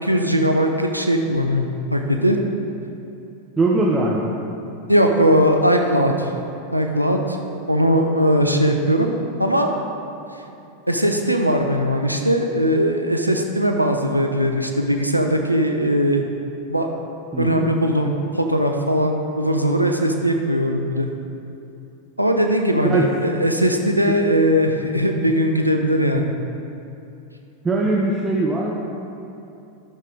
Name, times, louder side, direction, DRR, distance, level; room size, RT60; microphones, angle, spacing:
voice 1, 0.0-2.4 4.9-6.3 6.7-7.4 7.7-9.1 9.4-9.7 10.9-16.2 16.7-16.9 17.4-21.1 22.2-26.3, equal, 90° right, 3 dB, 0.6 m, -19 dB
voice 2, 3.6-4.3 17.3-17.7 22.8-23.1 27.6-28.7, right 2 dB, 15° right, -4 dB, 0.9 m, -20 dB
12.0 x 6.4 x 4.0 m, 2.8 s
figure-of-eight pair, 90°, 0 cm